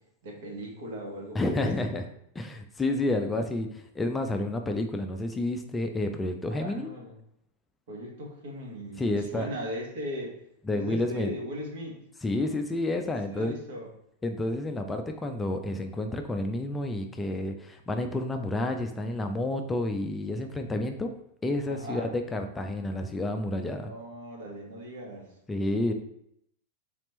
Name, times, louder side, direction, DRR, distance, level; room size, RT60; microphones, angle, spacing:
voice 1, 0.2-1.6 6.5-7.2 7.9-10.4 10.7-12.0 13.3-13.9 21.7-22.1 23.8-25.3, equal, 55° right, -1 dB, 1.5 m, -38 dB
voice 2, 1.3-2.1 2.3-6.9 9.0-9.5 10.6-11.3 12.2-13.6 14.2-21.1 21.4-23.9 25.5-25.9, left 2 dB, 15° left, 4 dB, 0.4 m, -30 dB
4.3 x 4.1 x 3.0 m, 0.73 s
figure-of-eight pair, 90°, 0 cm